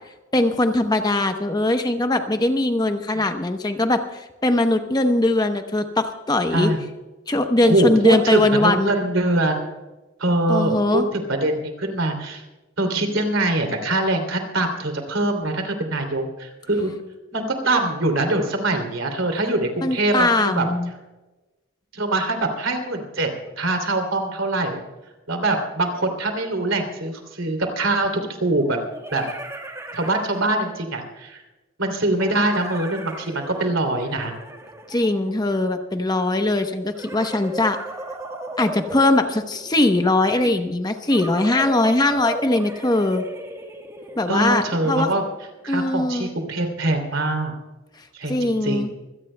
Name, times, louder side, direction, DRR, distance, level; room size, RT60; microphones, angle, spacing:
voice 1, 0.3-6.7 7.3-9.0 10.5-11.1 19.8-20.9 34.9-37.8 38.6-43.2 44.2-45.1 45.7-46.3 48.3-48.9, left 2 dB, 20° left, 6 dB, 0.9 m, -21 dB
voice 2, 7.6-9.7 10.2-12.4 12.8-16.9 17.3-20.7 21.9-23.3 23.6-24.8 25.3-28.8 29.1-29.2 29.9-31.4 31.8-34.3 44.3-45.3 45.6-47.5 48.1-48.9, right 2 dB, 70° right, 4 dB, 2.9 m, -23 dB
sound 1, 27.1-27.2 28.6-31.0 32.2-35.7 36.9-39.9 41.1-45.4, right 1 dB, 15° right, 1.5 m, -37 dB
25.5 x 17.5 x 2.2 m, 1.1 s
head